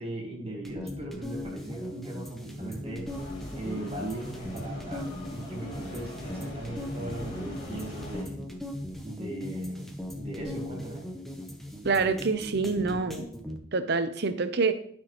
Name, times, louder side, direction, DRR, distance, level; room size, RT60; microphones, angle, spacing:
voice 1, 0.0-3.1 3.6-8.4 9.0-11.1, right 1 dB, 25° right, 0 dB, 1.6 m, -38 dB
sound 1, 0.7-13.6, left 1 dB, ahead, 0.7 m, -39 dB
sound 2, 3.0-8.2, left 1 dB, 45° left, 2.8 m, -42 dB
voice 2, 11.8-13.3 13.7-14.7, right 4 dB, 50° right, 11 dB, 0.6 m, -26 dB
11.5 x 6.1 x 3.1 m, 0.62 s
head